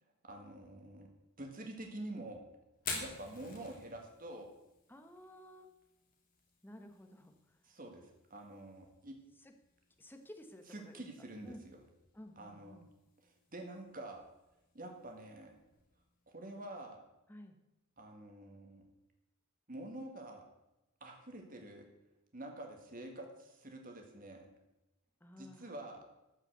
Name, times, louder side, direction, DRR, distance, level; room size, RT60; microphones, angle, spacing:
voice 1, 0.2-1.1 1.4-2.4 3.0-4.5 7.6-9.2 10.7-11.8 12.4-12.8 13.2-14.2 14.7-15.5 16.3-17.0 18.0-18.8 19.7-20.4 21.0-21.9 22.3-24.5 25.4-26.0, right 1 dB, 40° right, 3 dB, 1.8 m, -47 dB
Fire, 2.7-16.6, left 4 dB, 40° left, 2.7 m, -52 dB
voice 2, 4.9-5.7 6.6-7.3 9.4-9.5 10.0-11.0 11.5-11.6 12.1-12.9 17.3-17.5 25.2-25.7, left 1 dB, 10° left, 5 dB, 1.1 m, -53 dB
13.0 x 5.7 x 8.1 m, 0.96 s
head